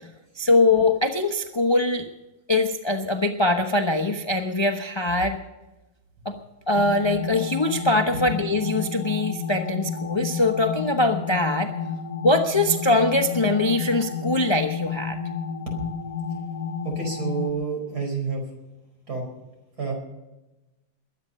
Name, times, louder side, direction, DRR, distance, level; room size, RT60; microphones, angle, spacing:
voice 1, 0.4-2.1 2.5-5.4 6.2-6.4 6.7-11.7 12.2-15.2, left 2 dB, 25° left, 5 dB, 0.6 m, -22 dB
sound 1, 6.8-17.5, left 6 dB, 50° left, 1.7 m, -31 dB
voice 2, 16.8-18.4 19.1-19.2 19.8-19.9, right 5 dB, 50° right, 2 dB, 5.3 m, -29 dB
21.5 x 9.7 x 5.5 m, 1.0 s
omnidirectional pair, 2.1 m